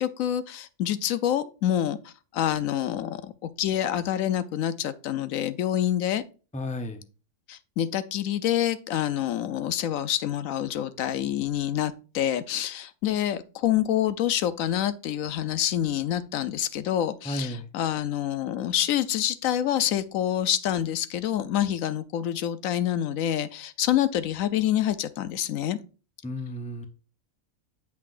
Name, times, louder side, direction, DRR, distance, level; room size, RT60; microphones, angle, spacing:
voice 1, 0.0-6.2 7.5-25.8, left 11 dB, 80° left, 1.0 m, -27 dB
voice 2, 6.5-7.0 17.2-17.6 26.2-26.9, left 1 dB, 5° left, 0.6 m, -32 dB
7.4 x 5.9 x 2.5 m
omnidirectional pair, 1.4 m